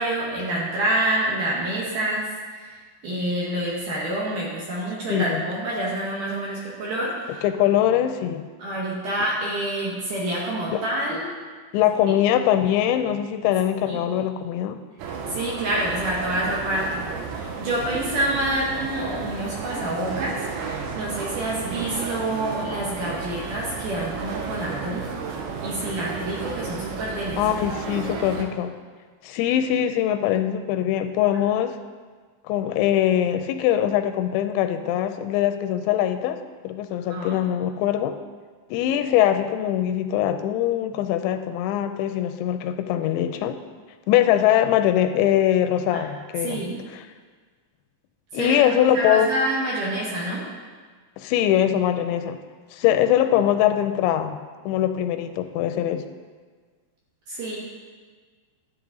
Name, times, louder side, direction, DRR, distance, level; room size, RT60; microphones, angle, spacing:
voice 1, 0.0-2.8 3.0-7.4 8.6-11.3 13.9-14.0 15.3-17.1 17.3-25.1 25.6-27.4 37.1-37.4 45.9-46.0 46.4-46.8 48.3-48.6 48.9-50.4 57.3-57.6, right 1 dB, 60° right, -4 dB, 2.4 m, -27 dB
voice 2, 5.1-5.4 7.4-8.5 10.7-10.8 11.7-14.8 27.4-28.8 29.2-31.8 32.5-36.4 36.6-38.2 38.7-43.6 44.1-46.6 46.9-47.0 48.3-49.3 51.2-52.4 52.7-56.1, left 11 dB, 85° left, 9 dB, 2.8 m, -22 dB
sound 1, 15.0-28.4, right 5 dB, 85° right, 3.3 m, -33 dB
12.0 x 8.2 x 3.9 m, 1.5 s
omnidirectional pair, 5.2 m